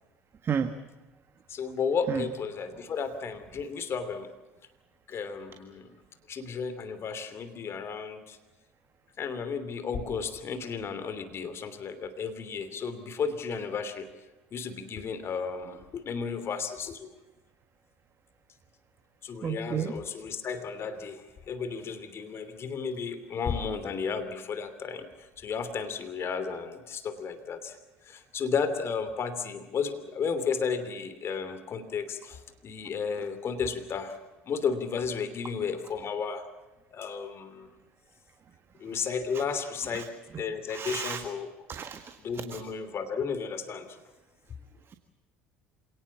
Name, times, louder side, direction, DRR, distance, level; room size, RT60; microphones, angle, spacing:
voice 1, 1.5-4.3 5.1-5.9 6.3-8.4 9.2-14.1 14.5-17.1 19.2-27.8 28.0-34.2 34.5-36.5 36.9-37.7 38.8-40.1 40.4-41.5 42.2-44.0, left 5 dB, 45° left, 11 dB, 2.9 m, -33 dB
voice 2, 19.4-19.9 39.9-40.0 40.7-41.2 41.7-42.1, right 7 dB, 40° right, 8 dB, 1.6 m, -31 dB
27.0 x 19.0 x 7.3 m, 1.1 s
hypercardioid pair, 70°, 6 cm